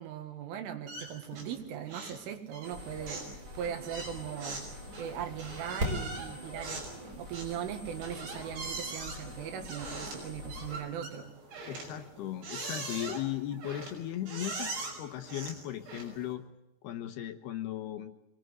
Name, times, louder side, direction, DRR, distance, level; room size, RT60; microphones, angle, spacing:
voice 1, 0.0-11.3, right 9 dB, 80° right, 7 dB, 4.4 m, -39 dB
sound 1, 0.9-1.6 1.9-2.2 2.5-16.3, right 3 dB, 60° right, 7.8 m, -42 dB
sound 2, 2.6-10.8, left 1 dB, 15° right, 5.3 m, -42 dB
voice 2, 11.7-14.7 15.0-16.4 16.8-18.1, left 12 dB, 75° left, 7 dB, 2.6 m, -37 dB
24.5 x 20.5 x 8.0 m, 0.90 s
omnidirectional pair, 5.6 m